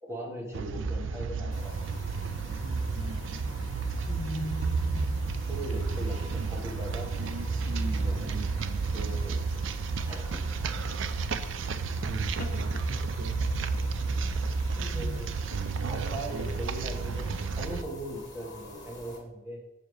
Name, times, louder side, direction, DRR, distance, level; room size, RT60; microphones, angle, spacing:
voice 1, 0.0-1.7 2.0-2.1 5.5-7.1 7.6-8.4 8.9-9.6 10.1-10.4 14.9-15.3 15.9-19.6, right 1 dB, 15° right, -1 dB, 1.4 m, -40 dB
sound 1, 0.5-17.8, right 4 dB, 65° right, 0.4 m, -31 dB
sound 2, 1.5-19.2, left 2 dB, 20° left, 1.9 m, -48 dB
voice 2, 4.1-5.1 12.4-12.8 14.8-15.2, left 1 dB, 40° left, 4 dB, 0.5 m, -38 dB
7.0 x 6.7 x 3.2 m, 1.0 s
head